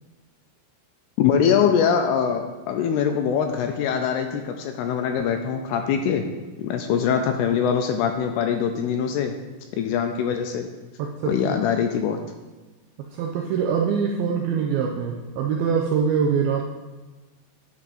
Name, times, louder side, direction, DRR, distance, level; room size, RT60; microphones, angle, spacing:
voice 1, 1.2-6.2 6.6-9.3 9.8-10.7 11.3-12.2, left 7 dB, 80° left, 5 dB, 2.4 m, -23 dB
voice 2, 11.0-11.6 13.0-16.7, right 6 dB, 85° right, 1 dB, 2.1 m, -24 dB
10.5 x 5.5 x 4.2 m, 1.2 s
omnidirectional pair, 5.0 m